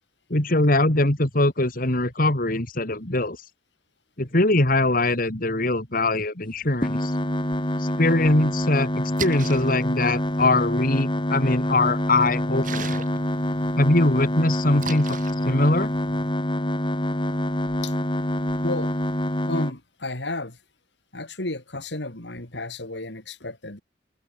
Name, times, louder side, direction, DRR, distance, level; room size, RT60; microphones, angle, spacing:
voice 1, 0.3-3.5 4.2-7.1 7.8-8.9 9.2-12.9 13.8-15.9, left 2 dB, 50° left, 2.8 m, -22 dB
sound 1, 6.8-19.7, left 1 dB, 30° left, 2.4 m, -26 dB
Splash splatter, 8.9-16.3, right 5 dB, 50° right, 3.8 m, -40 dB
voice 2, 19.5-20.6 21.1-23.8, left 2 dB, 75° left, 3.9 m, -32 dB
open air
head